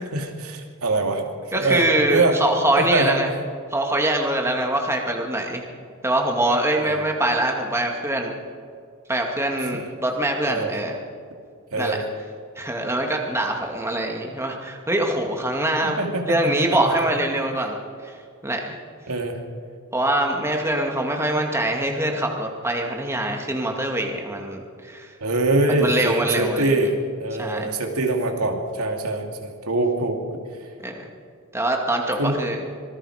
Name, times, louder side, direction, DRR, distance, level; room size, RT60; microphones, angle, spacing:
voice 1, 0.1-1.2 1.5-2.4 2.8-3.2 6.7-7.0 9.6-9.9 10.5-10.7 11.7-12.0 15.8-16.9 19.1-19.4 25.2-26.9 27.2-30.2 32.1-32.4, right 2 dB, 85° right, 2 dB, 2.9 m, -24 dB
voice 2, 1.5-3.3 3.7-5.6 6.0-8.3 9.1-11.0 11.8-12.0 12.6-16.0 16.3-17.8 18.0-18.1 18.4-18.8 19.9-25.1 25.7-26.9 27.4-27.7 30.8-31.1 31.5-32.7, right 1 dB, 10° right, 1 dB, 2.2 m, -24 dB
26.0 x 20.0 x 5.1 m, 2.3 s
head